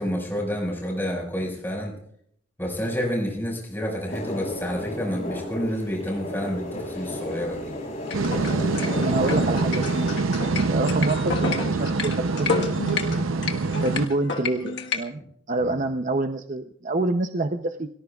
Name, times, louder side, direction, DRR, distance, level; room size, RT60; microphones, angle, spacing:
voice 1, 0.0-1.9 2.6-7.7 9.2-9.4 13.0-13.3 15.6-15.8, equal, 10° left, -1 dB, 5.3 m, -29 dB
sound 1, 4.1-10.1, left 1 dB, 35° left, 6.3 m, -33 dB
sound 2, 8.0-15.0, left 5 dB, 60° left, 1.5 m, -31 dB
sound 3, 8.1-14.1, right 3 dB, 85° right, 0.7 m, -25 dB
voice 2, 9.0-12.7 13.8-15.2 15.5-17.9, right 2 dB, 40° right, 6 dB, 0.7 m, -27 dB
29.0 x 19.0 x 2.4 m, 0.69 s
head